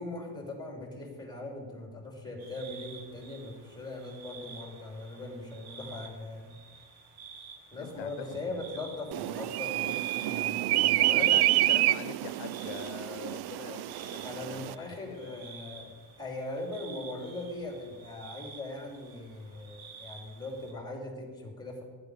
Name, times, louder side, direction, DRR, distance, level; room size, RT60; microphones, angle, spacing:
voice 1, 0.0-6.5 7.7-11.4 14.2-21.8, left 2 dB, 10° left, 0 dB, 3.8 m, -40 dB
sound 1, 2.4-20.7, right 5 dB, 75° right, 3.7 m, -51 dB
voice 2, 7.8-9.0 11.0-15.4, left 13 dB, 90° left, 11 dB, 0.7 m, -44 dB
sound 2, 9.1-14.7, right 15 dB, 55° right, 0.5 m, -28 dB
15.5 x 12.0 x 5.2 m, 1.5 s
cardioid pair, 140°, 47 cm